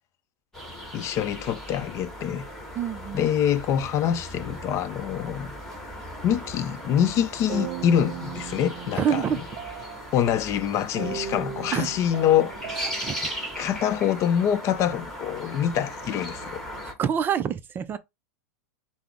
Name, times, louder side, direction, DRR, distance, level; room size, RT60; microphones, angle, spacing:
sound 1, 0.5-16.9, equal, 5° left, 1.7 m, -38 dB
voice 1, 0.9-2.4 3.1-5.5 6.2-9.3 10.1-12.5 13.6-16.6, left 9 dB, 35° left, 0.5 m, -25 dB
voice 2, 2.8-3.3 9.0-9.4 11.7-11.9 12.8-13.1 17.0-18.0, right 8 dB, 25° right, 0.4 m, -26 dB
sound 2, 6.4-6.8 7.5-10.3 11.0-14.1, right 8 dB, 50° right, 0.9 m, -38 dB
5.7 x 2.0 x 3.5 m
hypercardioid pair, 120°, 8 cm